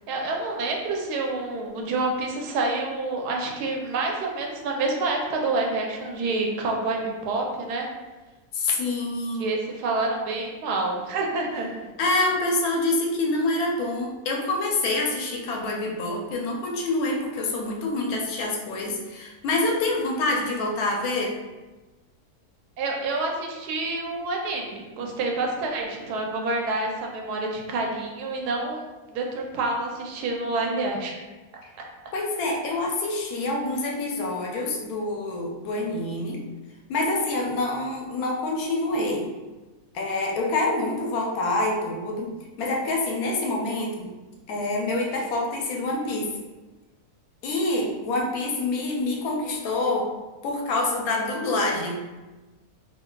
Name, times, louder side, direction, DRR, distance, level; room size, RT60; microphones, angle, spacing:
voice 1, 0.1-7.9 9.4-11.7 22.8-28.8 29.1-31.2 32.5-32.6, right 3 dB, 85° right, 1 dB, 1.1 m, -28 dB
voice 2, 8.5-9.5 12.0-21.4 32.1-36.4 36.9-39.3 39.9-42.3 42.6-44.1 44.5-46.3 47.4-50.1 50.4-52.0, left 2 dB, 75° left, 0 dB, 1.0 m, -26 dB
3.8 x 2.4 x 2.2 m, 1.2 s
omnidirectional pair, 1.7 m